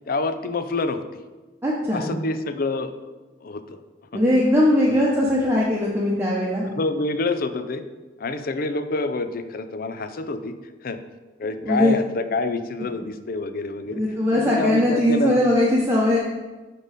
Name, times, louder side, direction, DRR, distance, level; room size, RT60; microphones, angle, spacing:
voice 1, 0.1-1.2 1.9-2.9 3.4-3.8 4.1-4.2 4.9-5.0 6.5-7.9 8.2-10.6 10.8-11.0 11.4-14.0 14.3-15.5, left 3 dB, 55° left, 10 dB, 0.5 m, -27 dB
voice 2, 1.6-2.1 4.1-6.7 11.6-12.0 13.9-16.2, left 1 dB, 15° right, -5 dB, 0.9 m, -20 dB
10.0 x 3.8 x 4.1 m, 1.2 s
head